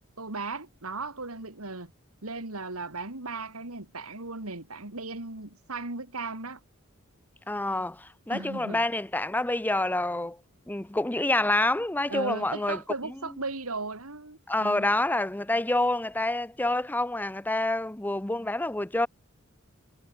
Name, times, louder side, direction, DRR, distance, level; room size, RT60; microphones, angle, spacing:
voice 1, 0.2-1.9 2.2-6.6 8.3-8.8 12.1-14.9, right 3 dB, 90° right, 3.5 m, -36 dB
voice 2, 7.5-10.4 10.7-12.8 14.5-19.1, left 2 dB, 10° left, 0.6 m, -27 dB
head